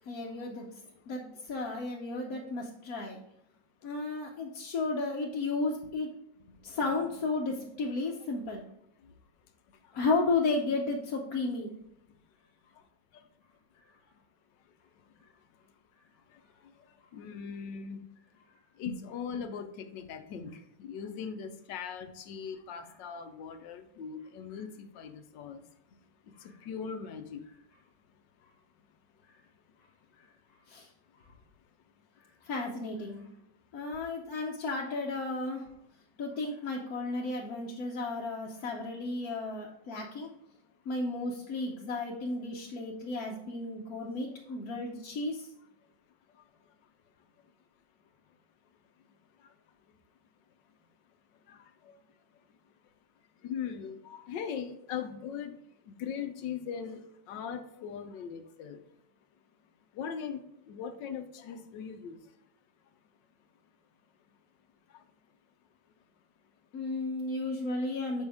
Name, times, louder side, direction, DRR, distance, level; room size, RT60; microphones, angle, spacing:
voice 1, 0.1-0.6 1.1-3.2 3.8-6.1 6.6-8.6 9.9-11.8 18.9-19.0 26.4-26.5 30.7-30.9 32.4-33.3 33.7-35.6 36.2-40.3 40.8-45.5 66.7-68.3, left 3 dB, 60° left, -2 dB, 1.3 m, -33 dB
voice 2, 17.1-18.0 18.8-20.5 20.8-24.7 24.9-25.6 26.6-27.4 51.5-51.6 53.4-55.5 56.0-57.0 57.3-58.8 59.9-62.2, left 7 dB, 90° left, 8 dB, 1.5 m, -39 dB
7.2 x 5.3 x 3.5 m, 0.80 s
omnidirectional pair, 1.9 m